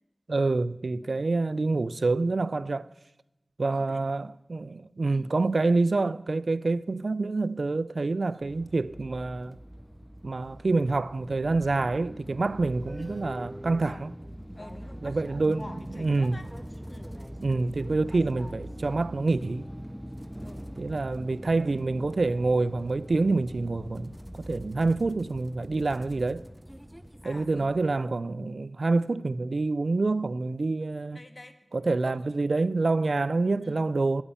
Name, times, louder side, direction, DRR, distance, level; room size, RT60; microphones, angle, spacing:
voice 1, 0.3-2.9 3.6-9.6 10.2-14.1 15.0-16.4 17.4-19.7 20.8-26.4 27.2-31.2 31.7-34.2, right 3 dB, 85° right, 0.3 m, -27 dB
voice 2, 3.7-4.0 5.1-5.3 13.9-14.0 14.6-16.5 16.9-17.1 20.4-20.7 27.2-27.9 31.1-31.5 32.0-32.2 33.6-33.8, left 1 dB, 45° left, 1.0 m, -46 dB
sound 1, 8.4-28.0, equal, 10° right, 0.6 m, -42 dB
8.8 x 8.4 x 8.8 m
wide cardioid pair, 55°, 0 cm